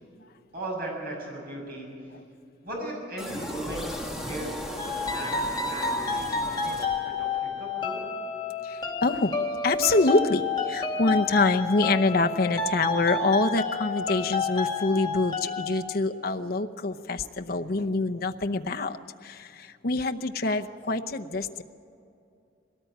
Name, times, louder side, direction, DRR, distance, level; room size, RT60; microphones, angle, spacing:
voice 1, 0.5-2.0 2.6-3.8 4.2-8.1, right 1 dB, 55° right, -1 dB, 7.2 m, -37 dB
sound 1, 3.2-7.4, equal, 5° right, 1.6 m, -36 dB
sound 2, 4.8-15.7, left 4 dB, 25° left, 2.2 m, -30 dB
voice 2, 8.6-9.3 9.6-19.0 19.2-21.6, left 3 dB, 55° left, 5 dB, 0.8 m, -25 dB
21.5 x 18.5 x 9.2 m, 2.6 s
head